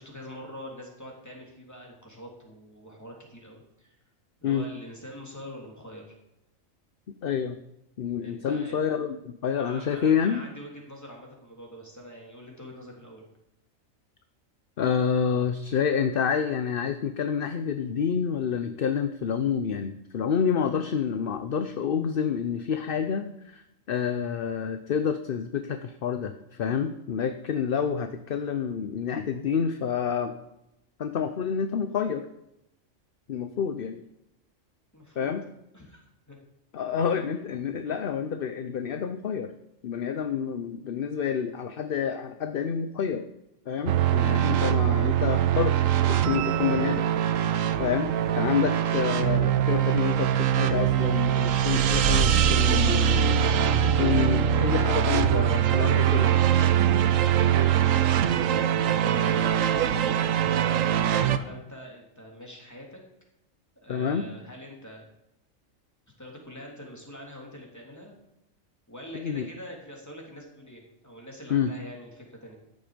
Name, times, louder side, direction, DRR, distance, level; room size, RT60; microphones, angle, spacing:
voice 1, 0.0-4.0 4.4-6.0 8.2-8.8 9.5-13.3 34.9-35.4 35.7-36.0 36.3-36.4 57.0-63.0 63.8-65.0 66.2-68.1 68.9-72.5, equal, 10° left, -1 dB, 3.3 m, -44 dB
voice 2, 7.2-7.6 8.0-10.4 14.8-30.3 31.0-32.3 33.3-34.0 35.2-35.4 36.7-39.5 39.8-43.3 43.7-45.8 46.1-47.1 47.8-53.5 54.0-56.4 63.9-64.3 69.1-69.5 71.5-71.7, left 7 dB, 50° left, 9 dB, 0.8 m, -28 dB
sound 1, 43.9-61.4, right 9 dB, 80° right, 1.1 m, -23 dB
14.0 x 10.5 x 5.2 m, 0.86 s
omnidirectional pair, 1.4 m